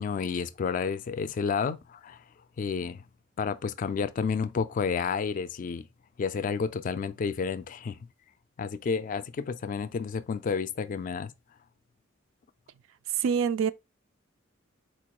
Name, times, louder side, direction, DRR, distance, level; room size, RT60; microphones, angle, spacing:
voice 1, 0.0-2.2 2.6-3.0 3.4-5.9 6.2-8.0 8.6-11.3, left 5 dB, 40° left, 0.3 m, -30 dB
voice 2, 13.2-13.7, right 7 dB, 75° right, 0.3 m, -25 dB
4.2 x 2.2 x 2.9 m
head